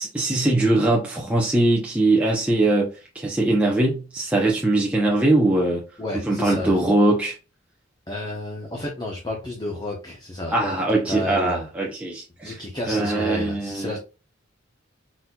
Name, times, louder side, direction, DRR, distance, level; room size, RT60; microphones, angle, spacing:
voice 1, 0.0-5.8 6.2-7.3 10.5-12.6 12.9-14.0, right 2 dB, 5° right, 0.8 m, -21 dB
voice 2, 6.0-6.8 8.1-11.7 12.4-14.0, left 1 dB, 20° left, 0.9 m, -31 dB
4.2 x 4.1 x 2.3 m
head